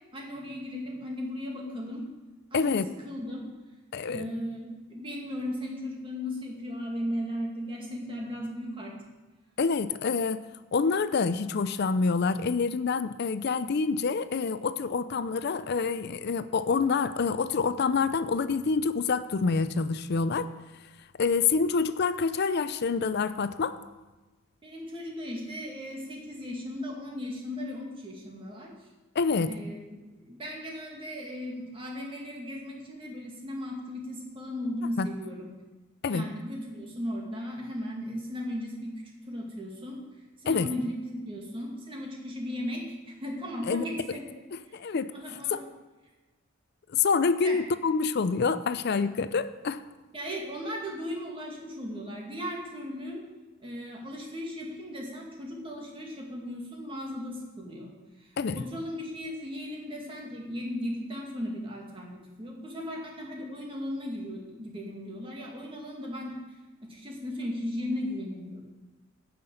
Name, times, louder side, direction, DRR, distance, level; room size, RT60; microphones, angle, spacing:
voice 1, 0.1-2.1 2.5-3.5 4.1-8.9 24.6-28.7 29.5-35.5 36.1-39.0 39.3-40.0 40.4-44.2 44.8-45.7 47.4-47.6 50.1-53.2 53.6-57.9 58.2-66.3 66.8-68.6, left 1 dB, 25° right, -1 dB, 2.2 m, -36 dB
voice 2, 2.5-2.9 3.9-4.2 9.6-10.4 10.7-20.5 21.2-23.8 29.2-29.5 35.0-35.1 36.0-36.3 40.5-40.7 43.7-43.9 44.5-45.1 45.5-45.6 46.9-49.8 58.4-58.6, left 5 dB, 55° left, 13 dB, 0.5 m, -27 dB
9.3 x 5.9 x 7.8 m, 1.2 s
head